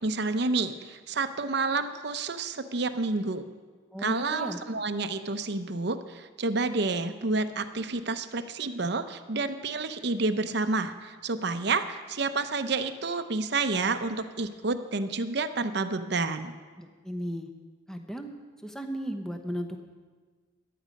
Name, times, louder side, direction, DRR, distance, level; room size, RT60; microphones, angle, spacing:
voice 1, 0.0-3.4 4.0-16.5, right 3 dB, 55° right, 9 dB, 0.7 m, -29 dB
voice 2, 3.9-4.6 16.8-17.5 17.9-18.3 18.6-19.8, equal, 5° left, 5 dB, 0.9 m, -35 dB
15.0 x 11.0 x 5.2 m, 1.5 s
head